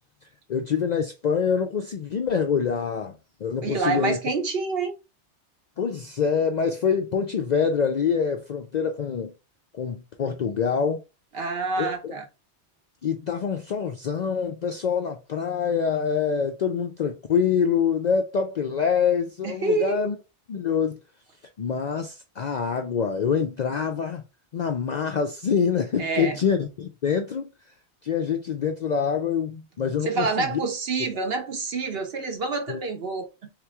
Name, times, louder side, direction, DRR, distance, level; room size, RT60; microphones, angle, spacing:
voice 1, 0.5-4.2 5.8-9.3 9.7-11.0 11.8-12.1 13.0-20.2 20.5-21.0 21.6-24.2 24.5-27.5 28.0-30.6 32.7-32.8, left 6 dB, 60° left, 0.4 m, -25 dB
voice 2, 3.6-4.9 11.3-12.3 19.4-20.1 26.0-26.4 30.0-33.5, right 4 dB, 60° right, 1.1 m, -27 dB
3.6 x 3.0 x 3.4 m
omnidirectional pair, 1.2 m